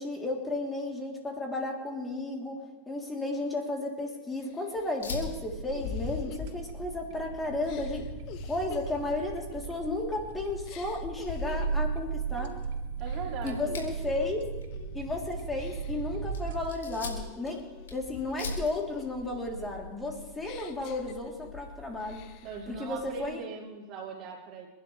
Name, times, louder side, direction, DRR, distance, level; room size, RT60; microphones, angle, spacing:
voice 1, 0.0-2.6 2.9-8.1 8.5-12.6 13.4-14.4 14.9-17.6 17.9-22.3 22.7-23.4, left 2 dB, 15° left, -1 dB, 3.7 m, -33 dB
sound 1, 3.8-3.9 4.4-7.1 7.6-10.3 10.7-11.9 12.4-12.7 13.0-14.3 14.7-15.1 15.6-16.2 16.7-18.6 19.0-21.6 22.0-22.6, left 7 dB, 50° left, 1.3 m, -45 dB
Fire, 5.0-23.3, left 3 dB, 85° left, 4.0 m, -45 dB
sound 2, 5.4-16.7, right 5 dB, 65° right, 2.6 m, -37 dB
voice 2, 13.0-13.8 22.4-24.7, right 6 dB, 45° right, -1 dB, 3.5 m, -40 dB
29.0 x 11.5 x 3.5 m, 1.1 s
hypercardioid pair, 105°, 0 cm